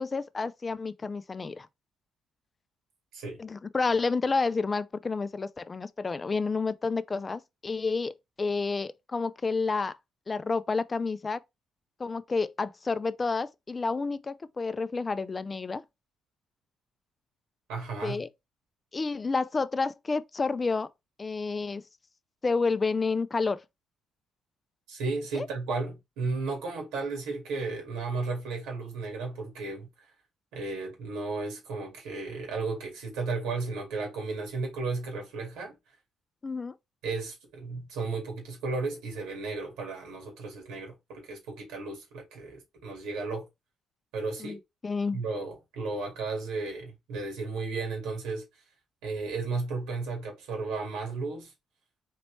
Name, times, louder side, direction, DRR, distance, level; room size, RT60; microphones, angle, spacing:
voice 1, 0.0-1.7 3.4-10.0 10.3-11.4 12.0-15.8 18.0-18.3 18.9-20.9 21.2-21.8 22.4-23.6 25.3-25.5 36.4-36.8 44.4-44.6 44.8-45.2, left 4 dB, 30° left, 0.3 m, -30 dB
voice 2, 17.7-18.2 24.9-29.9 30.5-35.7 37.0-43.5 44.1-44.6 45.1-48.4 49.0-51.5, right 3 dB, 90° right, 2.0 m, -34 dB
4.1 x 3.1 x 3.1 m
cardioid pair, 80°, 0 cm